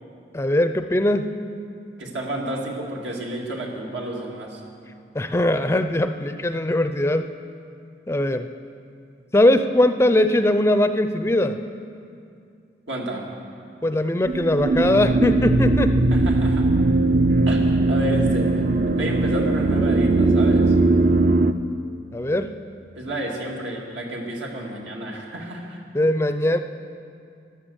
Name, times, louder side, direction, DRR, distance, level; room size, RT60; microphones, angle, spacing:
voice 1, 0.3-1.3 5.1-7.3 8.1-8.5 9.3-11.6 13.8-16.1 22.1-22.5 25.9-26.6, left 1 dB, 15° left, 9 dB, 0.4 m, -20 dB
voice 2, 2.0-4.6 12.9-13.3 16.1-16.7 17.5-18.5 18.9-20.8 23.0-25.8, right 1 dB, 85° right, -1 dB, 2.3 m, -31 dB
sound 1, 14.2-21.5, right 2 dB, 45° right, 0.5 m, -19 dB
12.5 x 12.5 x 7.9 m, 2.4 s
head